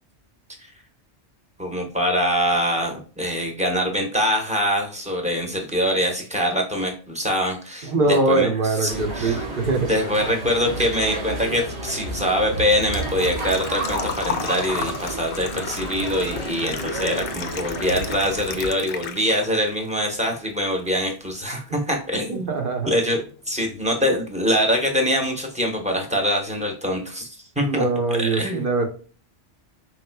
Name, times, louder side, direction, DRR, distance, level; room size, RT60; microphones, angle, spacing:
voice 1, 1.6-9.4 9.8-22.6 22.9-27.9 28.2-28.6, equal, 5° right, 2 dB, 0.9 m, -24 dB
voice 2, 7.8-9.9 22.3-23.0 27.6-28.9, right 3 dB, 50° right, 3 dB, 1.0 m, -22 dB
sound 1, 8.9-18.7, right 2 dB, 85° right, 2.2 m, -31 dB
Engine / Trickle dribble / Fill (with liquid), 11.8-19.7 20.0-21.0 21.3-21.4 23.3-23.4 23.6-23.9 24.3-24.4 24.6-24.7, left 6 dB, 60° left, 0.7 m, -33 dB
4.8 x 3.6 x 2.2 m, 0.39 s
omnidirectional pair, 1.2 m